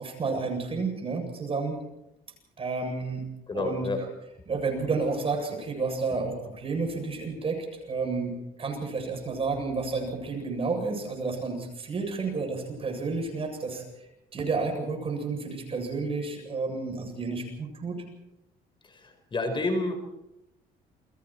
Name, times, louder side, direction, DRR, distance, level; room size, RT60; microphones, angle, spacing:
voice 1, 0.0-1.8 2.6-3.2 3.5-4.1 4.5-8.3 8.6-13.8 14.3-18.0, right 4 dB, 35° right, 2 dB, 7.9 m, -31 dB
voice 2, 3.5-4.0 18.8-19.9, left 2 dB, 30° left, 6 dB, 4.5 m, -29 dB
29.5 x 23.0 x 4.5 m, 0.88 s
cardioid pair, 110°, 17 cm